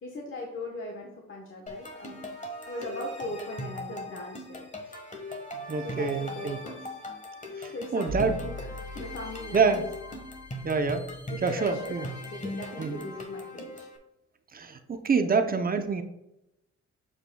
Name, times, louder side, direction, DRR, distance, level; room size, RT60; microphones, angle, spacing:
voice 1, 0.0-2.3 2.7-4.7 5.8-6.9 7.7-9.8 11.3-13.9, left 1 dB, 45° left, -1 dB, 1.2 m, -40 dB
sound 1, 1.7-14.0, left 1 dB, 25° left, 1.4 m, -40 dB
voice 2, 5.7-6.6 7.6-8.4 9.5-9.8 10.6-11.1 11.4-12.0 12.8-13.0 14.5-16.0, right 5 dB, 30° right, 7 dB, 0.7 m, -26 dB
sound 2, 8.1-11.9, left 2 dB, 90° right, 0.9 m, -42 dB
7.3 x 6.6 x 2.3 m, 0.86 s
cardioid pair, 90°, 30 cm